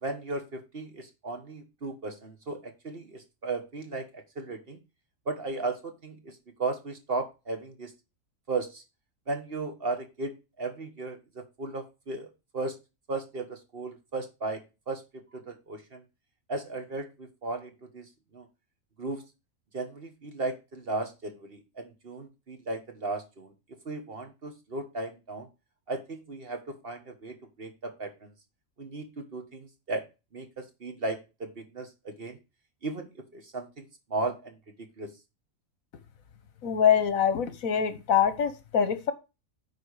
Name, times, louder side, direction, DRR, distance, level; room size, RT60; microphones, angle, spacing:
voice 1, 0.0-4.8 5.2-7.9 8.5-8.8 9.3-10.3 10.6-12.8 13.1-16.0 16.5-18.5 19.0-19.2 19.7-23.5 23.8-25.5 25.9-28.3 28.8-30.0 30.3-32.4 32.8-35.1, right 3 dB, 45° right, 6 dB, 1.5 m, -36 dB
voice 2, 36.6-39.1, left 8 dB, 75° left, 12 dB, 1.5 m, -24 dB
9.4 x 4.6 x 4.8 m, 0.28 s
omnidirectional pair, 1.4 m